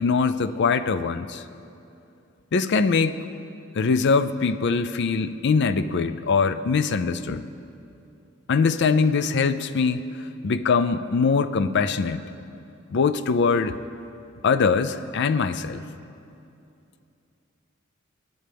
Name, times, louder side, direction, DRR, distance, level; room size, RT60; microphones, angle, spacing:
voice 1, 0.0-1.4 2.5-3.2 3.7-7.5 8.5-12.2 12.9-13.7 14.4-15.8, left 5 dB, 60° left, 12 dB, 0.4 m, -22 dB
22.0 x 9.5 x 3.4 m, 2.7 s
head